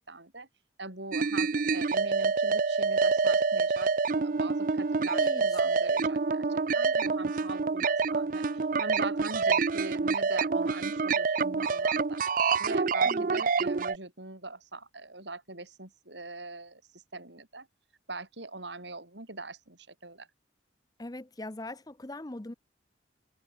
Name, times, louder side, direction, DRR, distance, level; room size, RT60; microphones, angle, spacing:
voice 1, 0.1-0.5 0.8-17.7 18.1-20.3, right 2 dB, 65° right, 5.7 m, -42 dB
sound 1, 1.1-14.0, right 4 dB, 45° right, 0.5 m, -27 dB
voice 2, 5.1-5.6 13.0-13.3 21.0-22.5, left 1 dB, 20° left, 0.6 m, -40 dB
open air
head